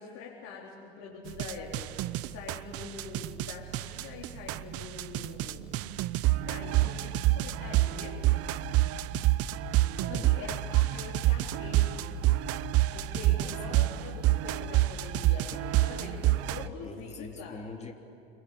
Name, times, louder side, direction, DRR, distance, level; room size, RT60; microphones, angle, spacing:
voice 1, 0.0-5.8 6.4-8.2 9.9-12.2 12.5-17.6, left 5 dB, 60° left, -5 dB, 4.4 m, -44 dB
sound 1, 1.2-14.5, right 5 dB, 80° right, 2.5 m, -47 dB
sound 2, 1.3-16.7, right 16 dB, 50° right, 0.8 m, -28 dB
voice 2, 9.0-9.4 10.1-10.3 13.3-13.6 16.6-17.9, left 4 dB, 20° left, 3 dB, 3.1 m, -45 dB
27.5 x 22.5 x 8.6 m, 2.5 s
hypercardioid pair, 85°, 31 cm